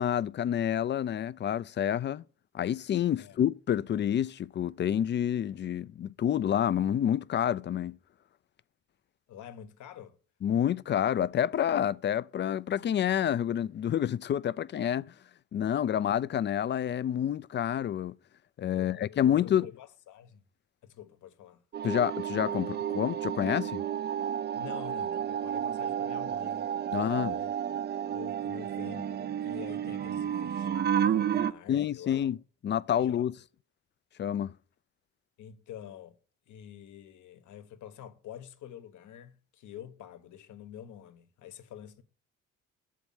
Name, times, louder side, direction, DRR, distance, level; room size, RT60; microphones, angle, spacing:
voice 1, 0.0-2.2 2.5-8.0 10.4-15.1 15.5-18.1 18.6-19.7 21.8-23.8 26.9-27.4 31.7-32.4 32.6-33.3 34.2-34.5, left 10 dB, 40° left, 0.4 m, -28 dB
voice 2, 9.3-10.2 18.7-20.4 20.8-21.6 24.5-27.5 28.1-32.3 32.9-33.3 35.4-36.2 36.5-42.0, left 10 dB, 75° left, 1.0 m, -47 dB
sound 1, 21.7-31.5, right 9 dB, 35° right, 0.4 m, -31 dB
7.4 x 4.7 x 7.0 m
cardioid pair, 90°, 30 cm